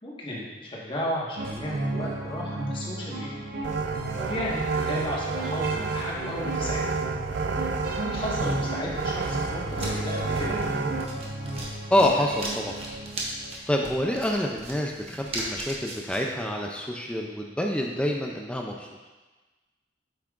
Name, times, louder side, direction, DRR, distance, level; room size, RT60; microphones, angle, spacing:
voice 1, 0.0-3.4 4.1-6.8 7.9-10.6, equal, 30° left, -5 dB, 1.4 m, -34 dB
sound 1, 1.4-13.7, right 1 dB, 55° right, 0.9 m, -34 dB
sound 2, 3.6-11.0, right 4 dB, 85° right, 0.4 m, -30 dB
sound 3, 9.6-16.2, right 2 dB, 35° right, 1.1 m, -38 dB
voice 2, 11.9-12.8 13.7-18.9, left 1 dB, 5° left, 1 dB, 0.4 m, -27 dB
8.3 x 5.9 x 2.5 m, 1.2 s
head